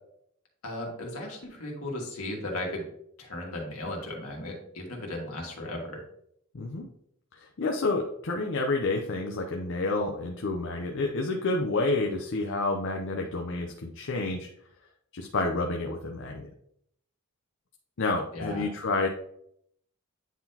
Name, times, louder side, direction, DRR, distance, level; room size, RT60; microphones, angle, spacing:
voice 1, 0.6-2.8 3.2-6.0 18.3-18.6, left 1 dB, 75° left, 0 dB, 1.9 m, -36 dB
voice 2, 6.5-6.9 7.3-14.5 15.1-16.5 18.0-19.1, left 2 dB, 60° left, 2 dB, 0.6 m, -29 dB
9.1 x 3.8 x 2.8 m, 0.69 s
head